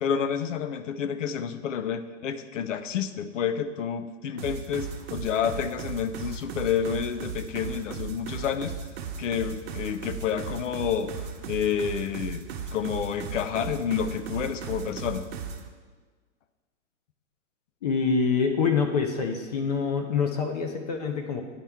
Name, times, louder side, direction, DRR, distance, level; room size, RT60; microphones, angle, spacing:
voice 1, 0.0-8.7 9.2-11.1 11.5-12.4 12.7-15.2, left 8 dB, 80° left, 11 dB, 0.6 m, -29 dB
sound 1, 4.4-15.6, right 6 dB, 55° right, 0.8 m, -36 dB
voice 2, 17.8-21.4, left 5 dB, 35° left, 5 dB, 0.5 m, -26 dB
9.9 x 4.3 x 3.5 m, 1.5 s
hypercardioid pair, 155°, 37 cm